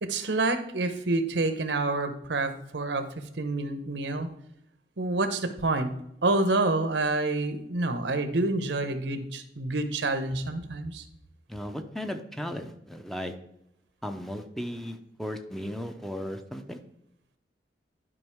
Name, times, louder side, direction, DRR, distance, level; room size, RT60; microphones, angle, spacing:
voice 1, 0.0-3.1 3.4-4.3 5.0-5.9 6.2-11.0, right 2 dB, 80° right, 9 dB, 0.9 m, -28 dB
voice 2, 11.5-13.3 14.0-16.8, equal, ahead, 6 dB, 0.6 m, -36 dB
11.0 x 5.1 x 3.6 m, 0.79 s
head